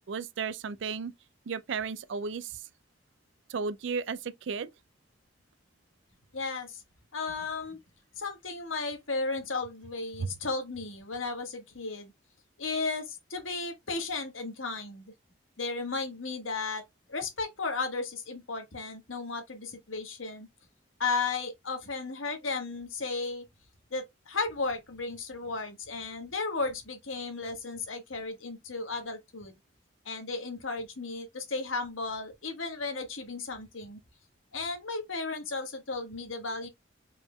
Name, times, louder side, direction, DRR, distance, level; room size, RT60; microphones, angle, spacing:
voice 1, 0.1-1.1 1.5-2.5 3.5-4.7 10.2-10.3, right 5 dB, 70° right, 0.4 m, -34 dB
voice 2, 6.3-6.8 7.1-7.8 8.2-12.1 12.6-15.1 15.6-20.5 21.0-23.4 23.9-29.5 30.0-34.0 34.5-36.7, left 3 dB, 90° left, 1.5 m, -34 dB
5.3 x 4.4 x 2.2 m
head